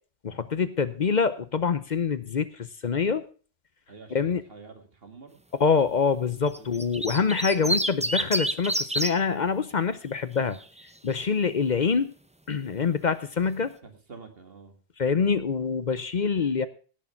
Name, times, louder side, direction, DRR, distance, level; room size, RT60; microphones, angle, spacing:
voice 1, 0.2-2.5 2.8-3.2 4.1-4.4 5.6-10.6 11.0-12.1 12.5-13.7 15.0-16.7, left 5 dB, 50° left, 14 dB, 0.8 m, -25 dB
voice 2, 3.9-5.4 6.3-6.9 13.8-14.7, right 4 dB, 65° right, 6 dB, 2.3 m, -48 dB
sound 1, 6.5-9.1 10.4-10.8, right 1 dB, 10° right, 0.5 m, -28 dB
17.5 x 6.7 x 5.7 m, 0.39 s
omnidirectional pair, 1.0 m